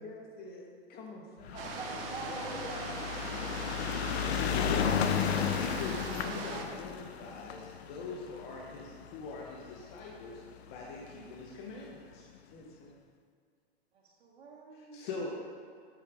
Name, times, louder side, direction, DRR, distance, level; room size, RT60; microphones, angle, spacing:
voice 1, 0.0-1.6 12.4-13.0, left 2 dB, 30° left, 0 dB, 1.7 m, -48 dB
sound 1, 1.4-9.9 10.7-10.8 11.0-11.1 11.4-11.5, left 8 dB, 80° left, 0.6 m, -33 dB
voice 2, 1.5-2.9 14.0-15.1, right 3 dB, 80° right, -5 dB, 2.3 m, -44 dB
sound 2, 1.6-6.6, right 4 dB, 65° right, 1.3 m, -41 dB
voice 3, 4.5-5.0 5.3-10.4 10.6-12.3 14.7-15.4, left 3 dB, 50° left, -2 dB, 1.4 m, -42 dB
8.7 x 8.4 x 3.7 m, 2.2 s
hypercardioid pair, 120°, 31 cm